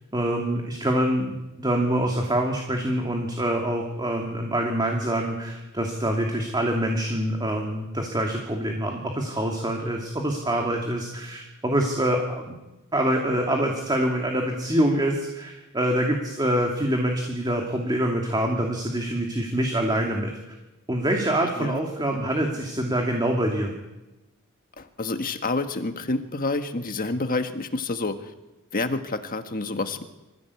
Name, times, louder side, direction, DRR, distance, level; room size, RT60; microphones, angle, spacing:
voice 1, 0.1-12.5 12.9-20.3 20.9-23.7, right 1 dB, 20° right, 1 dB, 2.6 m, -25 dB
voice 2, 24.8-28.3 28.7-30.0, left 3 dB, 40° left, 7 dB, 1.6 m, -28 dB
25.5 x 15.5 x 8.4 m, 1.0 s
head